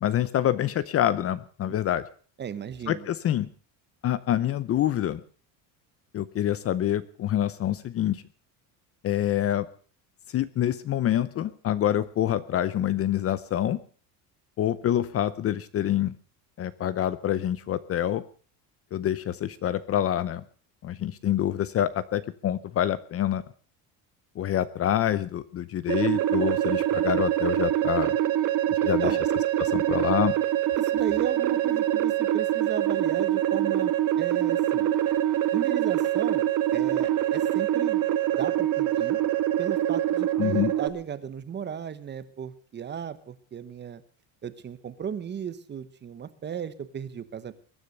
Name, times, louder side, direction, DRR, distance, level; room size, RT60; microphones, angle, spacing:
voice 1, 0.0-2.0 2.9-3.5 4.0-5.2 6.1-8.2 9.0-9.7 10.3-13.8 14.6-16.1 16.6-18.2 18.9-20.4 20.8-23.4 24.4-28.1 28.8-29.1 29.6-30.3 40.4-40.7, left 11 dB, 35° left, 16 dB, 0.7 m, -26 dB
voice 2, 2.4-3.0 28.8-29.2 30.8-33.9 34.2-34.9 35.5-36.4 36.7-38.0 38.4-39.2 39.6-44.0 44.4-47.5, right 8 dB, 25° right, 13 dB, 1.1 m, -35 dB
sound 1, 25.9-40.9, right 12 dB, 50° right, 1.5 m, -25 dB
21.5 x 10.0 x 6.6 m, 0.43 s
cardioid pair, 170°, 42 cm